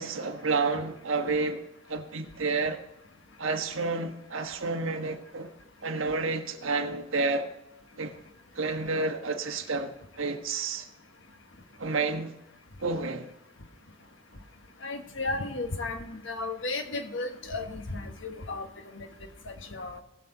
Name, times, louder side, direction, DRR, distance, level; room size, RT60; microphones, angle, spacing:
voice 1, 0.0-1.6 1.9-2.8 3.4-5.5 5.8-7.5 8.0-8.2 8.5-10.9 11.8-12.3 12.8-13.3, right 3 dB, 90° right, 1.3 m, -30 dB
voice 2, 14.8-18.7 18.9-19.1 19.5-20.0, left 2 dB, 70° left, 1.3 m, -34 dB
19.0 x 6.7 x 3.9 m
head